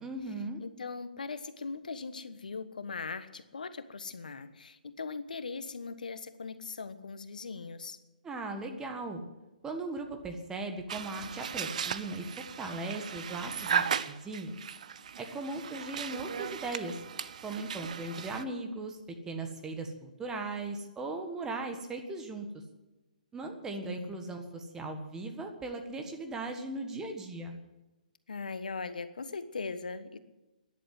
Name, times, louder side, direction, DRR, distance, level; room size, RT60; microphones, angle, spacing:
voice 1, 0.0-0.6 8.2-9.2 9.6-14.5 15.2-17.0 17.4-19.0 19.3-22.5 23.3-27.6, right 2 dB, 10° right, 4 dB, 1.5 m, -38 dB
voice 2, 0.6-8.0 15.0-15.1 23.8-24.3 28.3-30.2, left 4 dB, 70° left, 12 dB, 1.3 m, -40 dB
sound 1, 10.9-18.4, right 7 dB, 60° right, 0.8 m, -36 dB
13.0 x 11.0 x 9.7 m, 1.0 s
figure-of-eight pair, 130°, 5 cm